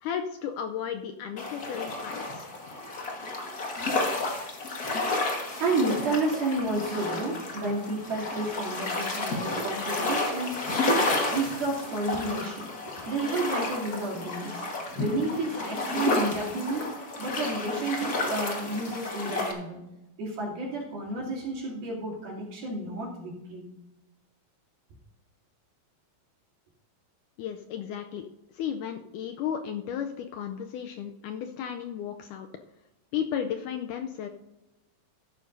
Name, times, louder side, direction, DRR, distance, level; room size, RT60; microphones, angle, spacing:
voice 1, 0.0-2.5 27.4-28.3 28.6-32.5 33.1-34.3, left 8 dB, 80° left, 6 dB, 1.9 m, -34 dB
sound 1, 1.4-19.5, left 2 dB, 55° left, 1.0 m, -31 dB
voice 2, 5.6-10.6 11.3-12.7 13.1-14.6 15.0-16.9 17.2-19.8 20.2-23.7, right 2 dB, 90° right, -4 dB, 4.8 m, -31 dB
14.5 x 11.5 x 2.7 m, 0.96 s
omnidirectional pair, 4.1 m